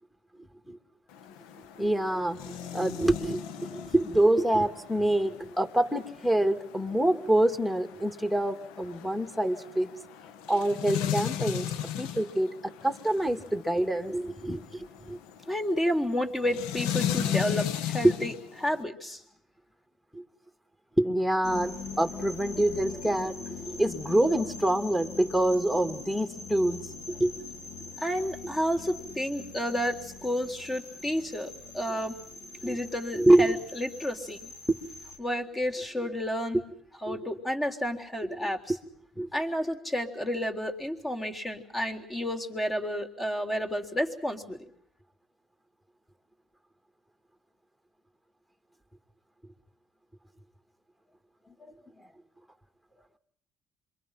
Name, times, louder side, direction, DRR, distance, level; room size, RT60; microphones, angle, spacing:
sound 1, 1.1-18.8, left 10 dB, 85° left, 1.1 m, -36 dB
voice 1, 1.8-9.9 10.5-11.7 12.0-15.2 20.1-20.2 21.0-27.3 32.6-32.8 33.1-33.6 34.7-34.8 37.1-37.2 38.3-38.5 39.2-39.3, right 1 dB, 5° left, 6 dB, 2.5 m, -26 dB
voice 2, 15.5-18.3 18.6-19.2 28.0-32.1 32.6-34.5 35.2-36.6 37.0-38.7 39.3-44.7, equal, 20° left, 4 dB, 3.8 m, -31 dB
sound 2, 21.4-35.2, left 4 dB, 65° left, 3.3 m, -42 dB
27.0 x 23.5 x 5.9 m, 0.64 s
supercardioid pair, 80°, 0 cm